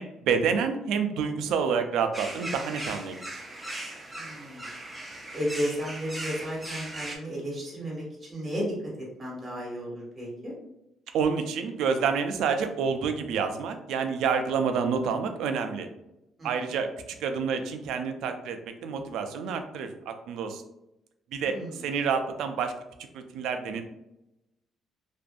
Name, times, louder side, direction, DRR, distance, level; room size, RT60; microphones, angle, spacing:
voice 1, 0.0-3.2 11.1-15.9 16.4-16.9 17.2-20.6 21.3-22.7 23.1-23.8, right 6 dB, 80° right, 7 dB, 0.3 m, -28 dB
sound 1, 2.1-7.2, right 1 dB, 10° right, 0.6 m, -38 dB
voice 2, 4.2-4.7 5.3-8.7 9.2-10.5 16.4-16.7 21.4-21.8, equal, 30° right, -4 dB, 1.2 m, -33 dB
2.5 x 2.4 x 2.2 m, 0.87 s
cardioid pair, 105°, 0 cm